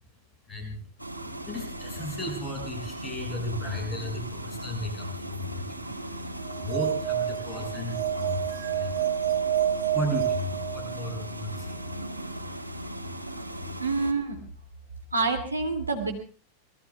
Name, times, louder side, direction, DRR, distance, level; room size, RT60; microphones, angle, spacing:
voice 1, 0.5-0.8 1.5-6.3 6.6-9.0 9.9-11.8, left 1 dB, 15° left, 1 dB, 6.9 m, -35 dB
sound 1, 1.0-14.1, equal, 90° left, 1.9 m, -38 dB
sound 2, 6.5-11.3, right 10 dB, 50° right, 1.4 m, -29 dB
voice 2, 13.8-14.4 15.1-16.1, right 3 dB, 80° right, 2 dB, 2.6 m, -27 dB
26.0 x 20.0 x 2.4 m, 0.39 s
figure-of-eight pair, 90°, 0 cm